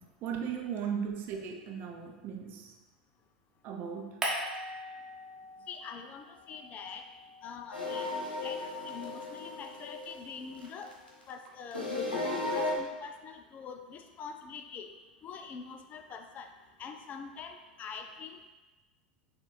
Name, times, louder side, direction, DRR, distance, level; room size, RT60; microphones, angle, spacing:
voice 1, 0.2-2.7 3.6-4.2, right 7 dB, 40° right, 2 dB, 0.6 m, -37 dB
sound 1, 4.2-5.9 6.2-8.6, right 1 dB, 10° right, 1.1 m, -40 dB
voice 2, 5.7-7.1 7.4-8.1 8.4-10.9 11.3-11.9 12.2-14.9 15.2-16.5 16.8-18.4, left 6 dB, 30° left, 6 dB, 0.4 m, -44 dB
sound 2, 7.7-11.1 11.7-12.8, left 2 dB, 85° left, 1.0 m, -35 dB
6.5 x 2.4 x 3.2 m, 1.2 s
figure-of-eight pair, 80°, 5 cm